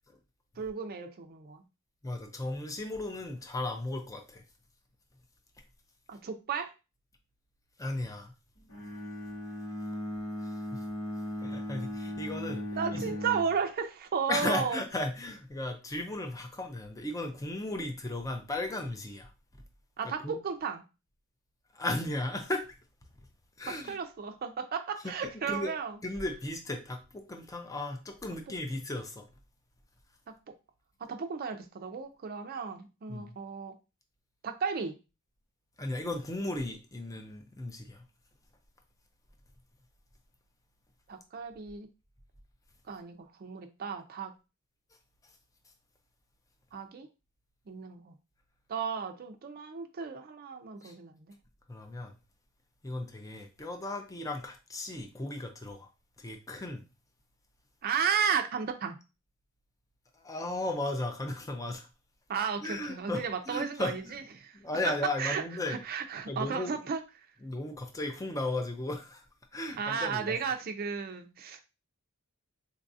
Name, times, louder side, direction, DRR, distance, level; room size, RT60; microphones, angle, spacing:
voice 1, 0.6-1.6 6.1-6.7 12.8-14.8 20.0-20.8 23.7-26.0 28.7-28.8 30.3-30.4 31.0-33.8 34.4-35.0 41.1-41.9 42.9-44.3 46.7-47.1 47.7-48.1 48.7-51.3 57.8-59.0 62.3-64.6 65.2-67.0 69.8-71.6, right 6 dB, 45° right, 6 dB, 0.4 m, -34 dB
voice 2, 2.0-4.4 7.8-8.3 10.7-10.8 11.4-12.6 12.9-13.0 14.3-19.3 20.0-20.4 21.7-22.7 23.6-24.0 25.0-25.1 25.5-25.7 26.0-29.3 33.1-33.3 35.8-38.0 50.8-50.9 51.7-52.1 52.8-55.9 56.2-56.8 60.2-61.9 62.6-64.2 64.5-65.8 66.3-66.8 67.4-69.2 69.5-70.4, left 2 dB, 15° left, 5 dB, 0.5 m, -35 dB
Bowed string instrument, 8.7-13.6, left 1 dB, 75° left, 1.1 m, -37 dB
4.0 x 2.3 x 2.6 m, 0.29 s
head